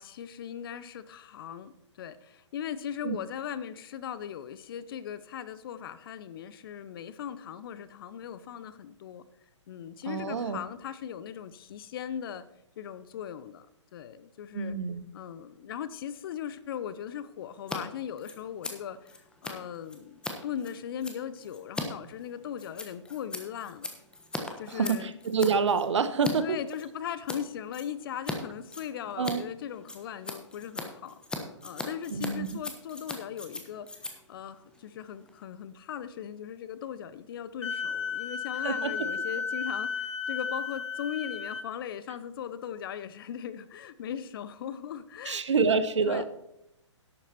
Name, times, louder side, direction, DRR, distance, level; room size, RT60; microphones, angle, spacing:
voice 1, 0.0-9.3 9.7-12.4 12.8-13.7 13.9-14.7 15.1-23.9 24.6-25.1 26.4-45.4 46.1-46.2, left 9 dB, 45° left, 14 dB, 0.8 m, -39 dB
voice 2, 10.1-10.6 14.5-15.0 24.7-26.6 29.2-29.4 32.1-32.5 38.6-38.9 45.2-46.2, right 5 dB, 70° right, 12 dB, 1.1 m, -27 dB
Scissors, 17.6-17.8 18.0-26.3 26.7-27.4 27.7-28.4 28.6-35.4, left 2 dB, 5° left, 1.2 m, -40 dB
Wind instrument woodwind instrument, 37.6-41.7, left 6 dB, 75° left, 1.3 m, -33 dB
11.5 x 8.3 x 4.3 m, 0.83 s
figure-of-eight pair, 125°, 16 cm